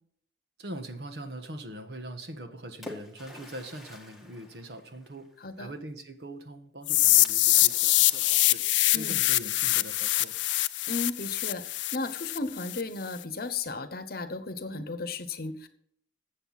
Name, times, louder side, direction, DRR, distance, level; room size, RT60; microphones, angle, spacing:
voice 1, 0.6-5.3 5.6-8.6 8.9-10.3, right 1 dB, 65° right, 7 dB, 1.4 m, -42 dB
Splash splatter, 2.3-5.5 7.3-9.2, left 2 dB, ahead, 1.7 m, -48 dB
voice 2, 5.4-5.7 8.9-9.2 10.9-15.7, left 3 dB, 55° left, 11 dB, 1.0 m, -35 dB
sound 1, 6.9-12.8, left 17 dB, 85° left, 0.5 m, -24 dB
13.5 x 7.9 x 4.1 m, 0.66 s
head